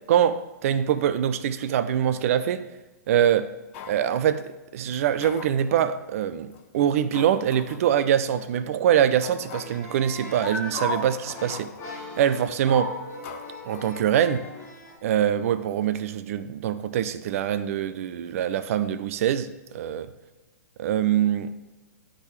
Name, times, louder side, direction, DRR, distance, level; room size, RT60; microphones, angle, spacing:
voice 1, 0.1-2.7 3.1-3.5 3.9-11.7 12.2-12.9 13.6-14.5 15.0-20.1 20.8-21.5, right 9 dB, 50° right, 12 dB, 0.4 m, -24 dB
sound 1, 3.7-4.1 4.9-5.9 6.5-6.6 7.1-7.9 8.4-8.5 9.2-9.9 10.5-10.6 10.7-11.9 12.4-12.7 13.2-14.5 14.8-14.9, left 8 dB, 45° left, 0.5 m, -43 dB
sound 2, 9.5-14.9, left 1 dB, 30° left, 1.8 m, -36 dB
9.6 x 3.8 x 3.1 m, 1.1 s
figure-of-eight pair, 115°, 9 cm